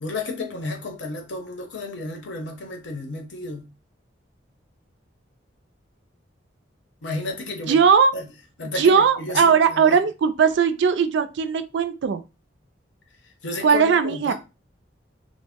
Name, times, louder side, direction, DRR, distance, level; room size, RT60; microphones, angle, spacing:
voice 1, 0.0-3.7 7.0-7.8 8.1-8.3 8.6-10.0 13.4-14.3, left 2 dB, 70° left, 0.7 m, -32 dB
voice 2, 7.7-8.1 8.8-12.2 13.6-14.3, right 6 dB, 70° right, 0.3 m, -18 dB
2.6 x 2.0 x 3.4 m
head